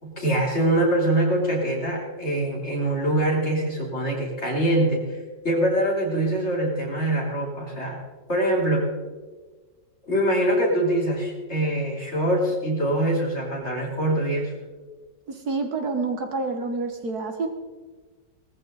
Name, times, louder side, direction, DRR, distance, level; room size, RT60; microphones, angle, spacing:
voice 1, 0.0-5.2 5.4-8.0 8.3-8.9 10.1-14.5, right 1 dB, 35° left, -3 dB, 3.8 m, -24 dB
voice 2, 15.3-17.5, right 3 dB, 60° right, 5 dB, 1.8 m, -28 dB
18.5 x 14.5 x 4.0 m, 1.3 s
omnidirectional pair, 1.9 m